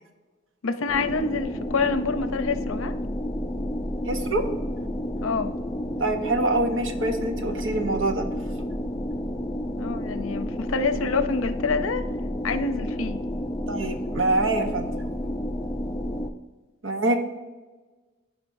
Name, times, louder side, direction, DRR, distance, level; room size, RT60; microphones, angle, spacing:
voice 1, 0.6-2.9 5.2-5.5 9.8-12.0 12.4-13.2, left 4 dB, 90° left, 10 dB, 0.6 m, -27 dB
sound 1, 0.9-16.3, equal, 15° left, 0.5 m, -31 dB
voice 2, 4.1-4.4 6.0-8.2 13.7-14.9 16.8-17.1, right 2 dB, 70° right, 6 dB, 1.0 m, -25 dB
15.5 x 5.2 x 2.6 m, 1.3 s
head